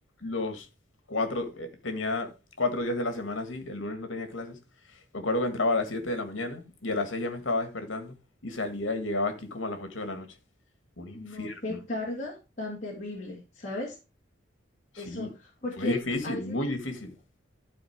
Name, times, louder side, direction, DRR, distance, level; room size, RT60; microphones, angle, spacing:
voice 1, 0.2-0.7 1.1-4.6 5.1-8.1 8.4-10.3 11.0-11.8 14.9-15.3 15.8-17.2, left 2 dB, 80° left, 1.7 m, -31 dB
voice 2, 11.1-14.0 15.0-16.0 16.2-16.7, left 2 dB, 35° left, 2.1 m, -36 dB
11.5 x 4.4 x 4.6 m
head